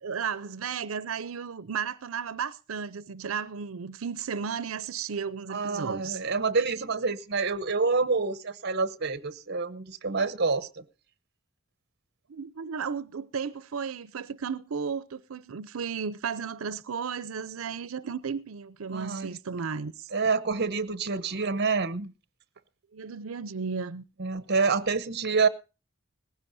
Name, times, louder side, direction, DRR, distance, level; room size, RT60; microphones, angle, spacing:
voice 1, 0.0-6.2 12.3-20.1 22.9-24.0, right 6 dB, 85° right, 0.6 m, -34 dB
voice 2, 5.5-10.7 18.9-19.4 20.1-22.1 24.2-25.5, right 4 dB, 55° right, 0.9 m, -27 dB
19.0 x 15.5 x 2.6 m
head